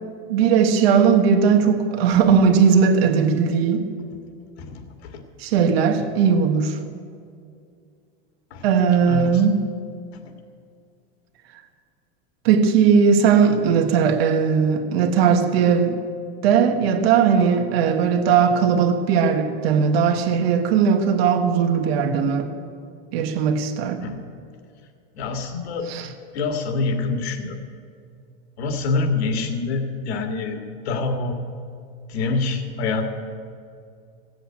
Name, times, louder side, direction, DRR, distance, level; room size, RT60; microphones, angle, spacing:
voice 1, 0.3-3.9 5.4-6.8 8.6-9.5 12.4-16.0 16.4-22.5 23.1-24.0 25.9-26.1, right 6 dB, 70° right, 7 dB, 1.4 m, -18 dB
voice 2, 9.1-9.4 10.1-10.2 24.0-24.2 25.2-25.9 26.3-27.6 28.6-31.4 32.1-33.0, left 3 dB, 80° left, 5 dB, 2.1 m, -26 dB
15.5 x 7.9 x 8.7 m, 2.3 s
supercardioid pair, 150°, 31 cm